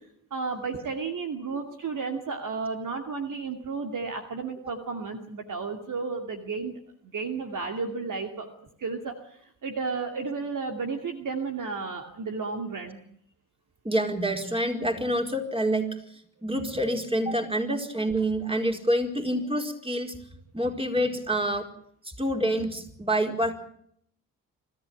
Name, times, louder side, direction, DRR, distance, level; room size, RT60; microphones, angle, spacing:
voice 1, 0.3-6.7 7.0-8.5 8.8-13.0, right 4 dB, 45° right, 4 dB, 2.6 m, -33 dB
voice 2, 13.8-15.9 16.4-20.2 20.5-21.7 22.0-23.5, right 1 dB, 15° right, 4 dB, 4.8 m, -27 dB
26.0 x 14.5 x 9.1 m, 0.68 s
figure-of-eight pair, 40°, 42 cm